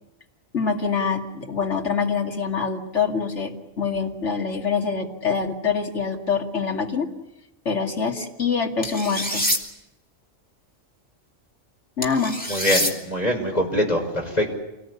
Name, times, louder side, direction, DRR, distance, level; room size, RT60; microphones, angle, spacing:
voice 1, 0.5-7.1 7.6-9.5 12.0-12.4, left 5 dB, 70° left, 2 dB, 2.7 m, -25 dB
sound 1, 8.8-9.6 12.0-12.9, equal, 5° left, 2.8 m, -25 dB
voice 2, 12.5-14.5, left 1 dB, 30° left, 2 dB, 5.9 m, -23 dB
27.5 x 19.5 x 9.8 m, 0.91 s
omnidirectional pair, 1.3 m